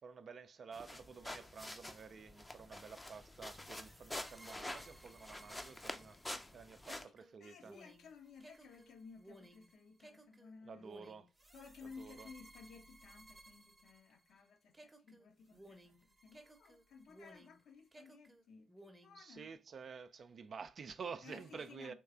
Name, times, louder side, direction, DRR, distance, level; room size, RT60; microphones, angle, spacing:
voice 1, 0.0-6.2 6.5-7.8 10.6-11.3 11.8-12.3 19.1-21.9, right 5 dB, 45° right, 0.4 m, -50 dB
sound 1, 0.7-7.0, left 1 dB, 15° left, 0.6 m, -48 dB
sound 2, 3.5-14.4 14.7-17.6 17.9-19.2, right 1 dB, 15° right, 0.8 m, -60 dB
voice 2, 7.4-10.9 11.5-19.6 21.2-21.9, left 5 dB, 55° left, 0.8 m, -57 dB
4.5 x 3.1 x 3.5 m
figure-of-eight pair, 40°, 0 cm